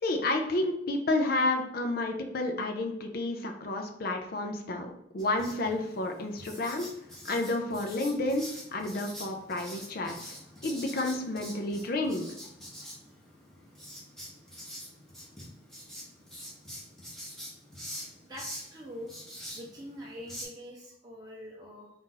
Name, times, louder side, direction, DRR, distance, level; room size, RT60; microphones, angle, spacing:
voice 1, 0.0-6.9 7.2-10.4 10.6-12.3, left 2 dB, 55° left, 4 dB, 0.5 m, -30 dB
Writing, 5.2-20.4, equal, 5° left, 1.2 m, -45 dB
voice 2, 18.2-21.9, equal, 20° right, -4 dB, 0.6 m, -44 dB
4.0 x 2.5 x 3.8 m, 0.77 s
head